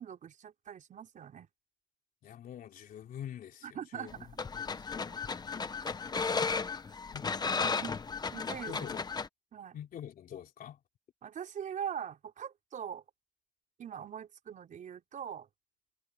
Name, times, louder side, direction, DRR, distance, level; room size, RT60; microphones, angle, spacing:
voice 1, 0.0-1.5 3.6-4.4 5.8-5.9 7.6-7.9 8.3-8.9 9.5-9.8 11.2-13.0 13.8-15.5, right 8 dB, 50° right, 5.7 m, -42 dB
voice 2, 2.2-3.7 3.9-4.1 4.5-4.8 7.1-7.3 8.7-9.0 9.7-10.8, left 10 dB, 55° left, 3.4 m, -45 dB
sound 1, 4.1-9.3, left 5 dB, 25° left, 1.1 m, -34 dB
cardioid pair, 110°, 17 cm